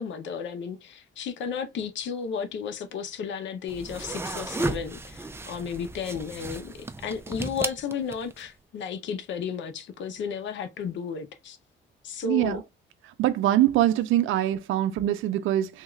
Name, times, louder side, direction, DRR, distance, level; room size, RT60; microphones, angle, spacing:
voice 1, 0.0-11.6 12.0-12.6, left 6 dB, 70° left, 0.7 m, -33 dB
sound 1, 3.7-8.5, right 2 dB, 10° right, 0.4 m, -34 dB
voice 2, 12.2-12.6 13.2-15.8, right 13 dB, 85° right, 0.4 m, -23 dB
3.5 x 2.3 x 3.0 m
cardioid pair, 90°, 20 cm